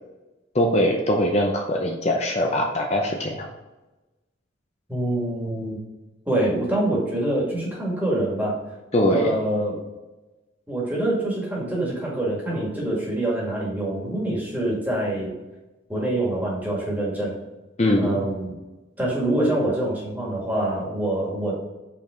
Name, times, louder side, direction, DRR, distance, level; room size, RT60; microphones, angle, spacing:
voice 1, 0.5-3.5 8.9-9.3 17.8-18.2, left 1 dB, 35° left, 1 dB, 0.6 m, -22 dB
voice 2, 4.9-5.8 6.3-8.6 9.1-9.8 10.7-15.3 15.9-17.4 18.0-18.5 19.0-21.5, right 1 dB, 10° right, -5 dB, 1.9 m, -25 dB
5.3 x 4.7 x 3.7 m, 1.1 s
head